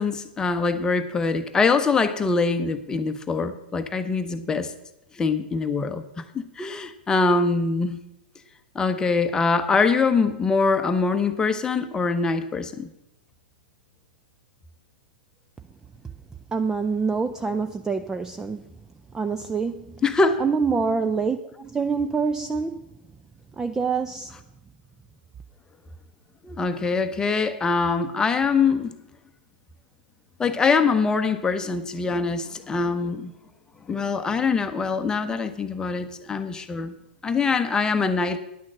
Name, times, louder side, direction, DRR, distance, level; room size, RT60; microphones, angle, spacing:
voice 1, 0.0-4.7 5.1-8.0 8.7-12.9 20.0-20.4 26.4-28.9 30.4-33.3 33.9-36.9 37.2-38.4, left 4 dB, 15° left, 0.9 m, -23 dB
voice 2, 16.5-18.6 19.1-19.9 20.4-22.8 23.6-24.3, right 5 dB, 10° right, 0.4 m, -26 dB
10.5 x 6.2 x 7.5 m
figure-of-eight pair, 105°, 5 cm